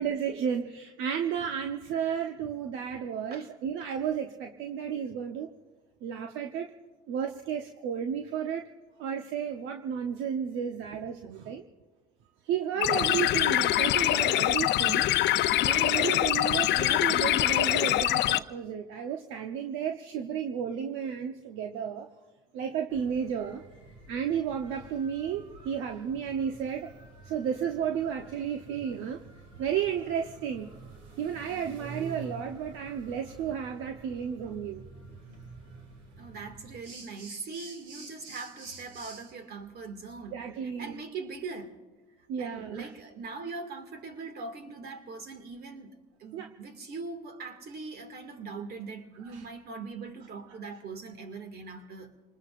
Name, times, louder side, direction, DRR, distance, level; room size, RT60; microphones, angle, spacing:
voice 1, 0.0-5.5 6.0-6.7 7.1-8.7 9.0-11.6 12.5-15.1 15.6-22.1 22.5-23.6 24.1-26.9 27.2-29.2 29.5-30.7 31.2-34.8 40.3-41.0 42.3-42.9 46.3-46.5 49.3-49.4, right 8 dB, 70° right, 4 dB, 1.0 m, -32 dB
sound 1, 12.8-18.4, left 14 dB, 55° left, 0.6 m, -24 dB
voice 2, 12.8-13.1 36.2-40.4 40.6-41.8 42.4-45.9 46.2-52.1, right 4 dB, 50° right, 6 dB, 2.2 m, -41 dB
sound 2, 22.9-39.3, right 3 dB, 90° right, 2.3 m, -48 dB
27.0 x 20.0 x 2.5 m, 1.2 s
supercardioid pair, 85°, 21 cm